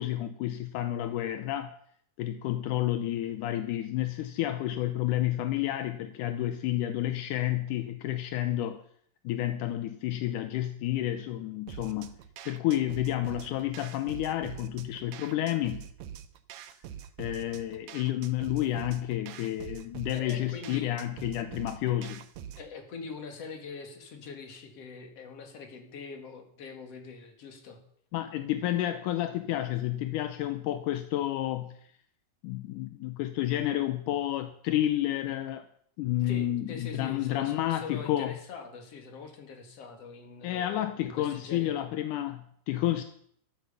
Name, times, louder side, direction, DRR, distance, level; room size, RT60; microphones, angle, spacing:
voice 1, 0.0-1.8 2.2-8.8 9.2-12.1 12.5-15.8 17.2-22.2 28.1-31.8 32.4-35.7 36.0-38.4 40.4-43.0, left 13 dB, 75° left, 9 dB, 1.9 m, -30 dB
sound 1, 11.7-22.7, right 9 dB, 75° right, 1.6 m, -45 dB
voice 2, 20.1-20.9 22.6-27.8 36.2-41.8, left 5 dB, 45° left, 5 dB, 2.9 m, -43 dB
13.0 x 12.5 x 6.9 m, 0.66 s
omnidirectional pair, 4.3 m